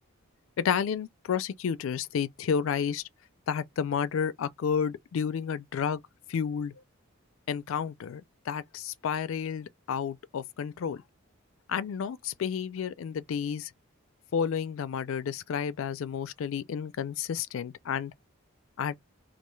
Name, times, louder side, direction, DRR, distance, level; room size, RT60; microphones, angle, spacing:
voice 1, 0.6-3.0 3.5-6.0 6.3-6.7 7.5-11.0 11.7-13.7 14.3-18.1 18.8-19.0, left 7 dB, 70° left, 0.3 m, -31 dB
2.3 x 2.3 x 3.0 m
head